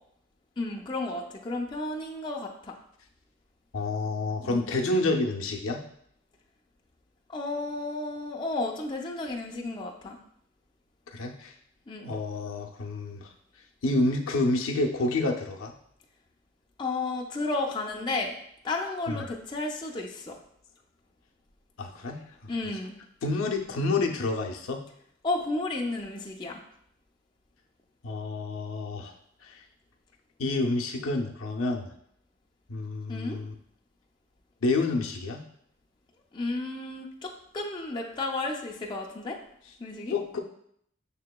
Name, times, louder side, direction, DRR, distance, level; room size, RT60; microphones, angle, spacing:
voice 1, 0.6-2.7 4.4-4.7 7.3-10.2 11.9-12.1 16.8-18.3 18.6-20.3 22.5-22.9 25.2-26.6 33.1-33.4 36.3-39.4 39.8-40.1, left 2 dB, 20° left, -1 dB, 0.4 m, -32 dB
voice 2, 3.7-5.8 11.1-11.5 12.0-13.3 13.8-15.7 19.1-19.3 21.8-22.2 23.2-24.8 28.0-29.1 29.4-29.5 30.4-31.9 32.7-33.5 34.6-35.4 40.1-40.4, left 2 dB, 90° left, 2 dB, 0.5 m, -28 dB
6.5 x 2.8 x 2.2 m, 0.69 s
head